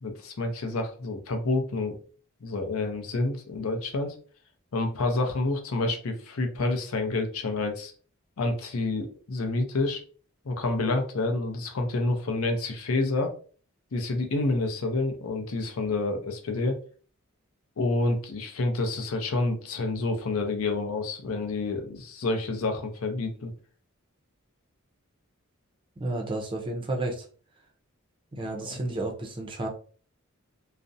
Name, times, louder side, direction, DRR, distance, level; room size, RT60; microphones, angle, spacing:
voice 1, 0.0-2.0 2.4-4.2 4.7-7.9 8.4-10.0 10.4-13.3 13.9-16.8 17.8-23.5 28.7-28.8, left 2 dB, 75° left, 5 dB, 0.5 m, -28 dB
voice 2, 26.0-27.3 28.4-29.7, right 2 dB, 25° right, 1 dB, 0.4 m, -31 dB
2.4 x 2.0 x 2.6 m, 0.41 s
head